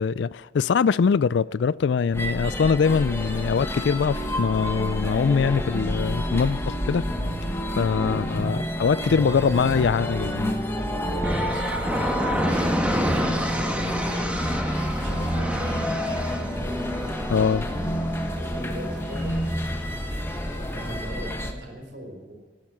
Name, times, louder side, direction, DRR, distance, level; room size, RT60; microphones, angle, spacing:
voice 1, 0.0-7.0 7.8-10.5 17.3-17.7, left 6 dB, 65° left, 0.3 m, -23 dB
sound 1, 2.1-21.5, equal, 15° left, 1.3 m, -29 dB
voice 2, 10.8-12.7 13.1-14.4 15.0-15.9 18.3-19.7 20.7-22.3, equal, 60° right, 3.9 m, -40 dB
sound 2, 11.2-21.1, equal, 5° right, 1.4 m, -29 dB
16.5 x 12.0 x 6.2 m
head